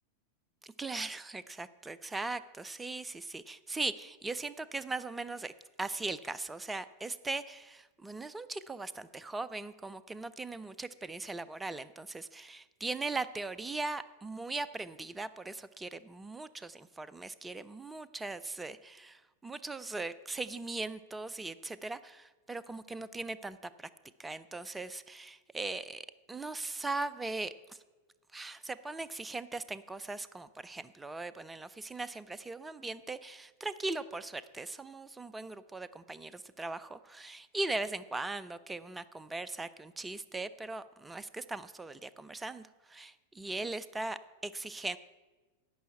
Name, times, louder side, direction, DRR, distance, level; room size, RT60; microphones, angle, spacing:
voice 1, 0.6-5.5 5.8-23.9 24.2-27.8 28.3-45.0, right 3 dB, 10° right, 16 dB, 0.4 m, -39 dB
10.5 x 5.6 x 8.6 m, 1.2 s
figure-of-eight pair, 90°, 0 cm